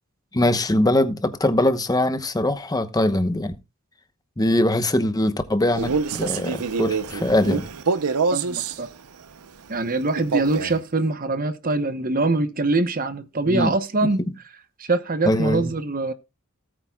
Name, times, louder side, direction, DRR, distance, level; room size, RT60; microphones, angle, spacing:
voice 1, 0.3-3.5 4.4-7.7 13.5-13.7 15.3-15.7, left 1 dB, 15° left, 0.9 m, -22 dB
Male speech man speaking, 5.7-8.8 10.2-10.8, right 5 dB, 85° right, 0.7 m, -25 dB
voice 2, 8.3-8.9 9.7-14.2 14.8-16.1, right 2 dB, 40° right, 0.9 m, -23 dB
17.5 x 8.7 x 2.3 m
head